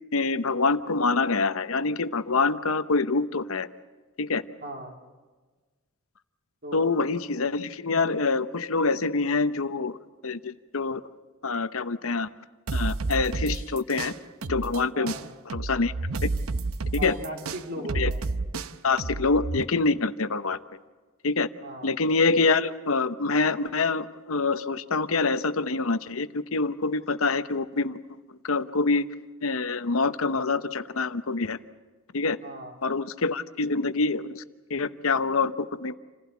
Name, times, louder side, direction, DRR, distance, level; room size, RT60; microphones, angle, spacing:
voice 1, 0.1-3.7 4.2-4.4 6.7-9.9 10.2-11.0 11.4-12.3 12.7-14.1 14.5-15.1 15.5-15.9 16.2-16.3 16.9-17.2 17.9-18.1 18.8-20.6 21.2-21.5 21.8-28.0 28.4-29.1 29.4-31.6 32.1-32.4 32.8-34.4 34.7-36.0, left 3 dB, 75° left, 12 dB, 0.9 m, -26 dB
voice 2, 4.6-5.0 6.6-6.9 14.9-15.2 17.0-18.2 21.6-21.9 32.4-32.7, right 1 dB, 50° right, 2 dB, 3.5 m, -37 dB
sound 1, 12.7-14.8 15.1-19.6, right 3 dB, 80° right, 0.8 m, -30 dB
28.0 x 16.0 x 8.3 m, 1.3 s
head